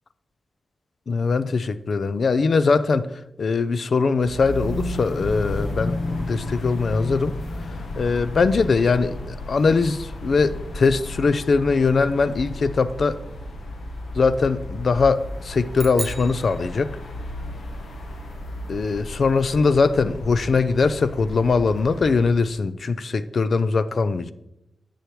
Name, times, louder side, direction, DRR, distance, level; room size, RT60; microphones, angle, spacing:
voice 1, 1.1-3.1 3.4-7.4 8.0-13.2 14.1-16.9 18.7-24.3, left 4 dB, 60° left, 0.5 m, -21 dB
sound 1, 4.2-22.5, left 1 dB, 80° left, 1.3 m, -33 dB
sound 2, 15.7-17.4, right 2 dB, 25° right, 0.5 m, -37 dB
9.9 x 7.9 x 3.1 m
wide cardioid pair, 90°, 0 cm